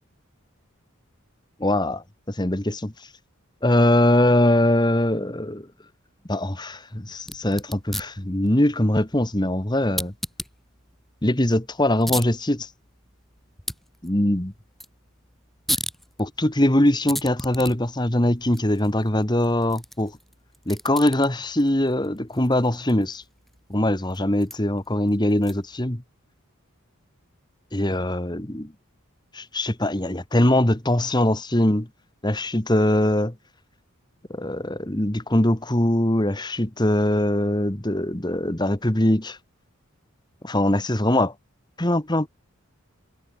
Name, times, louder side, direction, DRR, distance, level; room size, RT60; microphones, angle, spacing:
voice 1, 1.6-2.9 3.6-5.7 6.3-10.1 11.2-12.7 14.0-14.5 16.2-20.2 20.6-23.2 23.7-26.0 27.7-28.7 29.3-31.9 32.2-33.3 34.3-39.4 40.4-41.3 41.8-42.3, left 1 dB, 20° left, 1.7 m, -22 dB
sound 1, 7.2-25.8, equal, ahead, 7.7 m, -38 dB
head